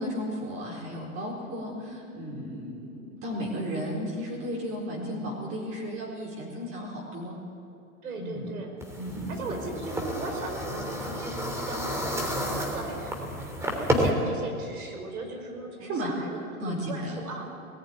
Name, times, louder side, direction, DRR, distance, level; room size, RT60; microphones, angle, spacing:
voice 1, 0.0-7.4 8.2-8.5 9.0-9.6 13.9-14.0 15.8-16.1 16.6-17.2, equal, 30° right, -4 dB, 4.4 m, -34 dB
voice 2, 4.9-5.2 8.0-8.7 9.3-17.5, right 2 dB, 85° right, 3 dB, 5.2 m, -38 dB
sound 1, 8.8-14.1, equal, 5° right, 3.1 m, -31 dB
19.5 x 14.5 x 9.6 m, 2.6 s
hypercardioid pair, 120°, 43 cm